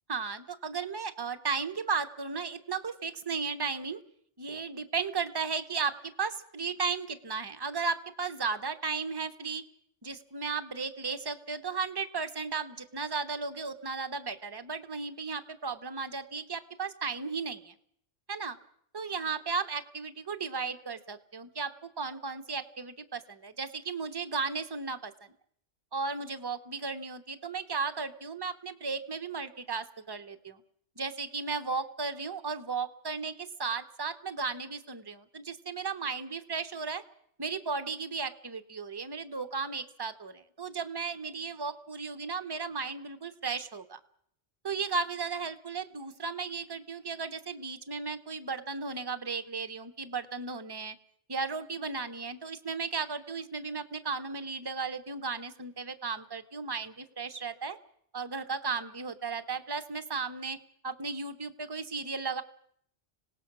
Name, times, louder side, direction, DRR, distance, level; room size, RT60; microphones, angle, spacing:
voice 1, 0.1-4.0 4.4-9.6 10.0-17.7 18.3-18.6 18.9-25.1 25.9-30.6 31.0-37.0 37.4-44.0 44.6-51.0 51.3-57.8 58.1-60.6 60.8-62.4, right 4 dB, 20° right, 10 dB, 1.0 m, -35 dB
26.0 x 18.5 x 6.1 m, 0.66 s
omnidirectional pair, 1.2 m